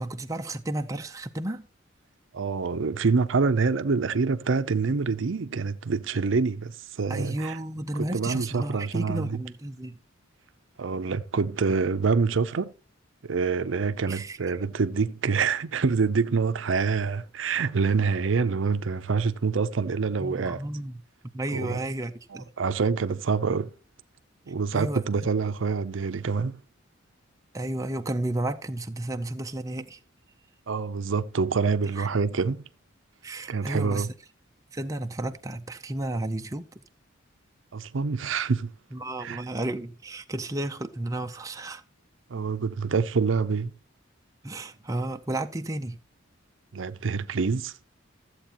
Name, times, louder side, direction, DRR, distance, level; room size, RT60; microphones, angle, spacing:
voice 1, 0.0-1.7 7.1-10.0 14.1-14.4 20.2-21.0 21.3-22.5 24.7-25.0 27.5-30.0 32.0-32.1 33.2-34.1 34.7-36.7 38.9-41.8 44.4-46.0, right 1 dB, 15° right, 0.6 m, -32 dB
voice 2, 2.3-7.6 8.0-9.4 10.8-12.7 13.2-20.6 21.5-21.8 22.3-23.7 24.5-26.6 30.7-32.6 33.5-34.1 37.7-38.7 39.2-39.4 42.3-43.7 46.7-47.8, right 4 dB, 70° right, 0.6 m, -26 dB
13.5 x 7.9 x 2.9 m
head